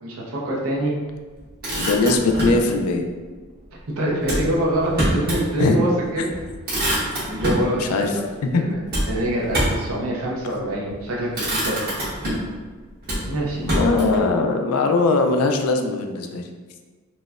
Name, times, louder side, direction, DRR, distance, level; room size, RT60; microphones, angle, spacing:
voice 1, 0.0-0.9 4.0-6.3 6.9-8.1 8.5-8.7 9.0-11.9 13.2-13.7, right 1 dB, 70° right, -4 dB, 0.7 m, -25 dB
Motor vehicle (road), 1.4-2.6 4.2-5.5 5.9-6.0 6.3-7.7 8.9-9.9 10.7-11.0 11.3-12.6 13.0-14.2, equal, 45° right, 1.1 m, -25 dB
voice 2, 1.8-3.1 5.6-5.8 7.8-8.2 8.4-8.6 13.6-16.4, left 3 dB, 75° left, 5 dB, 0.3 m, -20 dB
4.0 x 2.1 x 2.3 m, 1.4 s
head